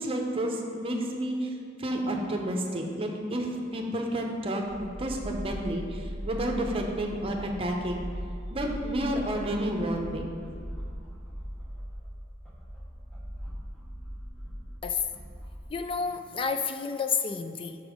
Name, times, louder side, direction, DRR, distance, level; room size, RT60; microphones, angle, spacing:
voice 1, 0.0-4.6 5.0-8.1 8.5-10.4, right 1 dB, 30° right, 2 dB, 0.7 m, -30 dB
sound 1, 4.7-15.7, equal, 5° left, 0.9 m, -39 dB
voice 2, 15.7-17.8, left 5 dB, 30° left, 8 dB, 0.3 m, -30 dB
6.0 x 5.4 x 4.9 m, 2.4 s
head